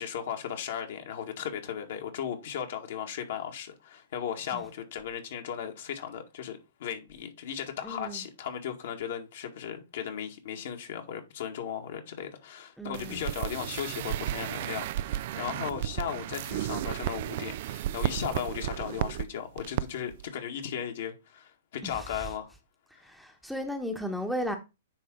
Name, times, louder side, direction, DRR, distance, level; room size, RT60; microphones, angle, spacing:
voice 1, 0.0-22.5, left 8 dB, 60° left, 1.9 m, -36 dB
voice 2, 7.8-8.2 12.8-13.2 21.8-22.0 23.0-24.6, equal, ahead, 1.1 m, -34 dB
sound 1, 12.9-19.2 19.6-19.8 20.1-20.2, right 13 dB, 55° right, 0.4 m, -33 dB
9.6 x 3.7 x 3.8 m
hypercardioid pair, 120°, 0 cm